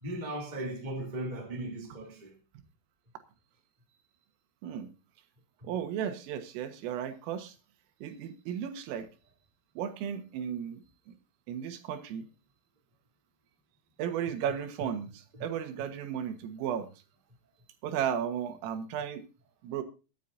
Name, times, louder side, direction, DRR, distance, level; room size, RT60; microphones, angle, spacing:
voice 1, 0.0-2.3 5.6-5.7 15.3-15.4, right 1 dB, 15° right, 1.9 m, -37 dB
voice 2, 5.6-7.6 8.0-9.1 9.8-10.8 11.5-12.3 14.0-16.9 17.8-19.2 19.6-19.8, right 9 dB, 85° right, 4.0 m, -34 dB
23.0 x 9.3 x 2.7 m
omnidirectional pair, 5.7 m